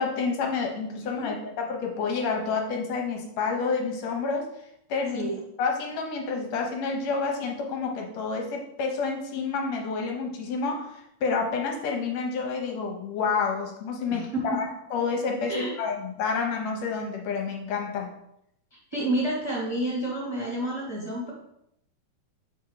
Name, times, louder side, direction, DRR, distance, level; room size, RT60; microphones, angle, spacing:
voice 1, 0.0-4.5 4.9-5.3 5.6-18.1, left 4 dB, 65° left, 1 dB, 1.9 m, -29 dB
voice 2, 14.1-14.6 15.5-15.7 18.9-21.3, right 1 dB, 10° left, -5 dB, 1.9 m, -29 dB
6.7 x 3.6 x 4.8 m, 0.77 s
omnidirectional pair, 3.6 m